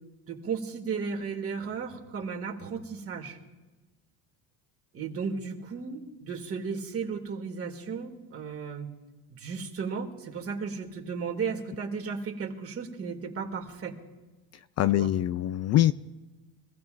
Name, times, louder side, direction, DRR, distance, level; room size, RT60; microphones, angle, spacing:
voice 1, 0.3-3.4 4.9-8.9 9.3-13.9 14.9-15.1, right 5 dB, 35° right, 2 dB, 2.4 m, -35 dB
voice 2, 14.8-15.9, left 13 dB, 45° left, 14 dB, 0.5 m, -23 dB
25.0 x 15.5 x 2.6 m, 1.2 s
supercardioid pair, 110°, 38 cm